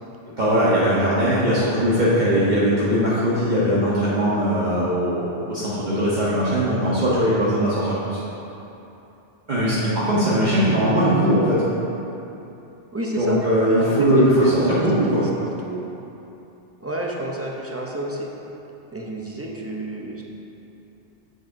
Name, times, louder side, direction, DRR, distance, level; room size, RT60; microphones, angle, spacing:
voice 1, 0.4-8.2 9.5-11.6 13.2-15.2, equal, 45° right, -10 dB, 1.1 m, -20 dB
voice 2, 12.9-13.4 13.7-14.8 15.1-15.8 16.8-18.3 18.9-20.2, right 1 dB, 20° right, -2 dB, 0.4 m, -29 dB
7.8 x 7.3 x 2.6 m, 2.9 s
omnidirectional pair, 1.2 m